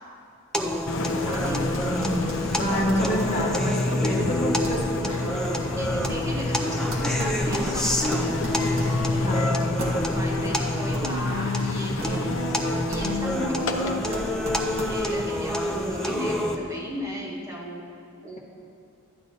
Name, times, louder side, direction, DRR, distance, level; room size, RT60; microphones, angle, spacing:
sound 1, 0.5-16.6, left 1 dB, 5° left, 0.4 m, -29 dB
Engine, 0.9-15.9, left 2 dB, 60° left, 0.6 m, -29 dB
voice 1, 1.2-1.6 2.6-3.5 5.7-9.2 10.1-17.8 18.2-18.4, equal, 15° right, -4 dB, 0.9 m, -36 dB
sound 2, 1.2-15.3, equal, 60° right, 1.6 m, -37 dB
voice 2, 1.9-5.3 9.2-9.6, equal, 35° left, -3 dB, 1.2 m, -27 dB
12.0 x 9.6 x 2.7 m, 2.4 s
head